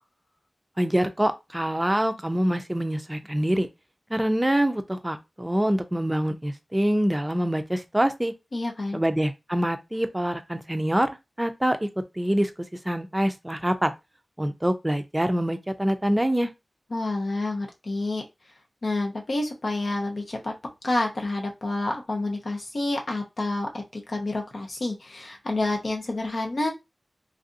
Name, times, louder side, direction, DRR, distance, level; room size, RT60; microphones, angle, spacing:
voice 1, 0.8-3.7 4.1-8.3 8.9-11.9 12.2-12.5 12.8-13.9 14.4-16.5, right 1 dB, 15° right, 0.4 m, -25 dB
voice 2, 8.5-9.0 16.9-18.2 18.8-20.5 20.8-26.7, left 2 dB, 70° left, 0.8 m, -28 dB
3.3 x 2.6 x 2.5 m
wide cardioid pair, 70°, 0 cm